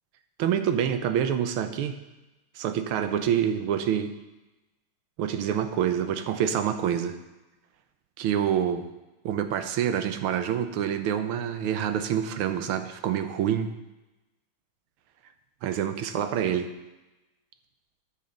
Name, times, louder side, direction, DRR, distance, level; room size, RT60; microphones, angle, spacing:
voice 1, 0.4-2.0 2.5-4.1 5.2-7.2 8.2-8.9 9.2-13.7 15.6-16.7, right 9 dB, 85° right, 9 dB, 1.6 m, -27 dB
12.5 x 8.3 x 3.8 m, 1.0 s
omnidirectional pair, 2.3 m